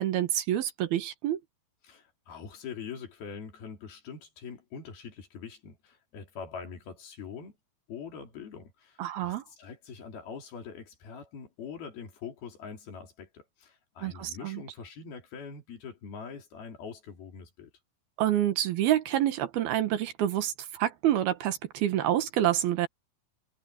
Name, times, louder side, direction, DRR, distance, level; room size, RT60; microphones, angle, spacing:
voice 1, 0.0-1.4 9.0-9.4 14.0-14.6 18.2-22.9, right 12 dB, 75° right, 3.2 m, -27 dB
voice 2, 1.8-7.6 7.9-17.7, left 6 dB, 70° left, 5.5 m, -43 dB
omnidirectional pair, 4.5 m